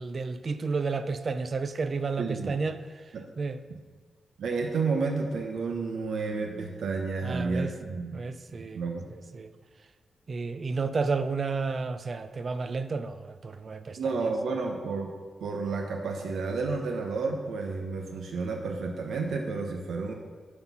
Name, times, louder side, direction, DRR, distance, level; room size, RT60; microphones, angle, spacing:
voice 1, 0.0-2.8 3.4-3.6 7.2-7.7 8.1-8.8 9.3-9.5 10.3-14.0, right 4 dB, 35° right, 11 dB, 0.4 m, -31 dB
voice 2, 2.2-2.5 3.1-3.2 3.7-3.8 4.4-8.3 8.5-9.1 14.0-15.1 15.4-20.1, right 4 dB, 80° right, 3 dB, 0.9 m, -31 dB
11.5 x 4.5 x 5.5 m, 1.5 s
wide cardioid pair, 155°, 0 cm